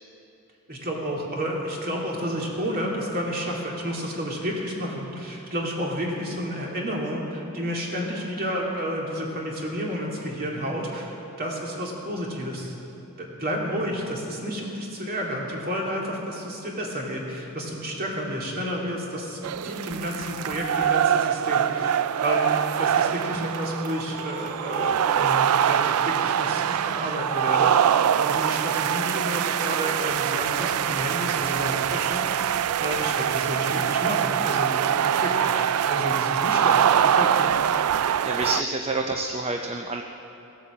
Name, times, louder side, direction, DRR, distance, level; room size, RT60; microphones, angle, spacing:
voice 1, 0.7-12.7 13.2-22.0 22.2-22.5 22.8-37.5, equal, 45° right, -2 dB, 2.6 m, -31 dB
sound 1, 19.4-38.6, right 9 dB, 75° right, 0.3 m, -24 dB
sound 2, 23.3-26.9, equal, 20° left, 1.0 m, -41 dB
voice 2, 38.2-40.0, right 2 dB, 25° right, 3 dB, 0.6 m, -28 dB
17.5 x 8.5 x 7.4 m, 3.0 s
head